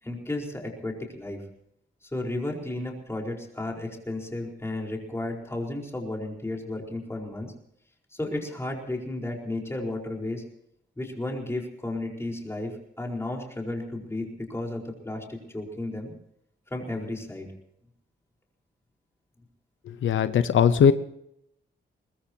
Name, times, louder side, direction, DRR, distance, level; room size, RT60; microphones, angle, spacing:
voice 1, 0.0-1.4 2.0-7.5 8.1-10.4 11.0-16.1 16.7-17.5, left 2 dB, 15° left, 0 dB, 4.6 m, -33 dB
voice 2, 20.0-20.9, left 8 dB, 85° left, 12 dB, 0.9 m, -19 dB
22.5 x 20.0 x 2.9 m, 0.76 s
wide cardioid pair, 125°, 20 cm